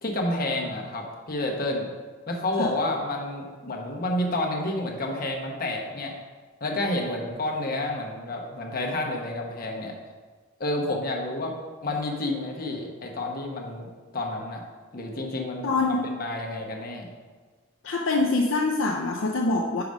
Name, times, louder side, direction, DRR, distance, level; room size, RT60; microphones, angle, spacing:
voice 1, 0.0-1.9 2.3-6.1 6.6-9.9 10.6-11.5 11.8-13.9 14.1-14.6 14.9-17.1, left 1 dB, 45° left, 0 dB, 1.0 m, -29 dB
voice 2, 15.6-16.0 17.8-19.8, left 3 dB, 65° left, 0 dB, 0.5 m, -24 dB
4.9 x 4.8 x 5.3 m, 1.5 s
head